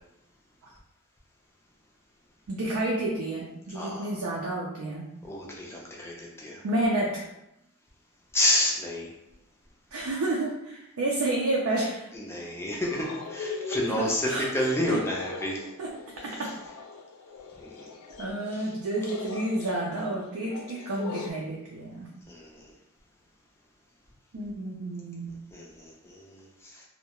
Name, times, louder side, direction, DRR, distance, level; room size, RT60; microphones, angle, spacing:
voice 1, 2.5-5.1 6.6-7.2 9.9-12.1 14.0-14.5 14.9-15.0 15.8-15.9 16.2-16.5 18.2-22.1 24.3-25.3, right 2 dB, 70° right, -3 dB, 0.4 m, -30 dB
voice 2, 3.7-4.1 5.2-6.6 8.3-9.1 12.1-15.6 16.2-16.4 17.6-17.9 18.5-18.7 22.3-22.7 25.5-26.8, left 1 dB, 10° left, -3 dB, 0.4 m, -30 dB
sound 1, 12.8-21.3, left 4 dB, 75° left, 0.3 m, -41 dB
2.2 x 2.1 x 2.9 m, 0.89 s
head